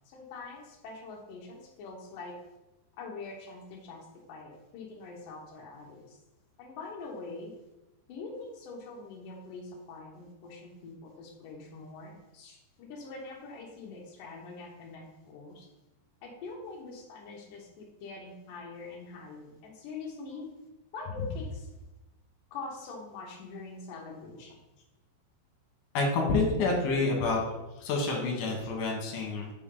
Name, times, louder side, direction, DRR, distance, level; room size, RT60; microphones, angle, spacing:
voice 1, 0.1-2.4 3.0-6.2 6.6-7.5 8.1-15.7 16.2-20.5 20.9-21.7 22.5-24.6, left 3 dB, 85° left, -1 dB, 1.9 m, -43 dB
voice 2, 25.9-27.4 27.8-29.5, left 3 dB, 65° left, 0 dB, 2.0 m, -28 dB
7.9 x 4.6 x 3.8 m, 0.99 s
omnidirectional pair, 5.1 m